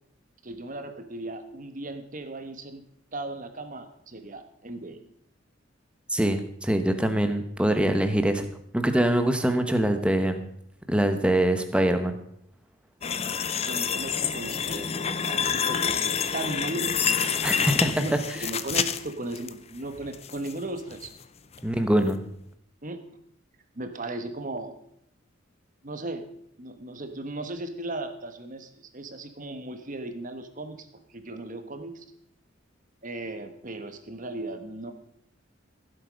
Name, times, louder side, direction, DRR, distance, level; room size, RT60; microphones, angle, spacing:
voice 1, 0.4-2.8 3.1-5.0 13.6-17.1 18.0-21.1 22.8-23.0 23.7-24.7 25.8-26.3 26.6-32.0 33.0-34.9, right 2 dB, 40° right, 8 dB, 1.2 m, -36 dB
voice 2, 6.1-8.5 8.7-10.4 10.9-12.2 17.4-18.2 21.6-22.2, right 1 dB, 5° right, 7 dB, 1.0 m, -23 dB
sound 1, 13.0-19.5 19.9-20.5 20.9-21.1 21.5-21.6, left 7 dB, 30° left, 0.5 m, -28 dB
15.5 x 7.9 x 5.1 m, 0.70 s
head